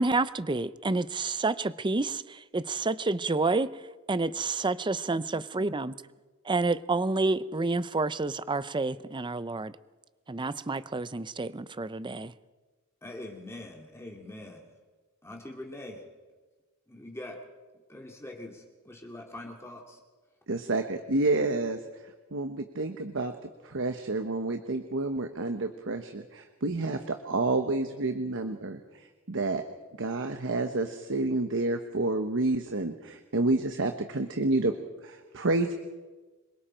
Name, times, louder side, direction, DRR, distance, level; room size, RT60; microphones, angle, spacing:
voice 1, 0.0-6.0 6.4-9.8 10.3-12.3, right 3 dB, 20° right, 15 dB, 0.6 m, -29 dB
voice 2, 13.0-14.7 15.2-16.1 16.9-17.4 17.9-20.0, left 1 dB, 10° left, 0 dB, 2.2 m, -43 dB
voice 3, 20.5-21.8 22.3-23.3 23.6-28.8 29.3-29.6 30.0-34.7 35.0-35.7, right 2 dB, 60° right, 7 dB, 1.2 m, -29 dB
26.5 x 23.0 x 4.4 m, 1.3 s
head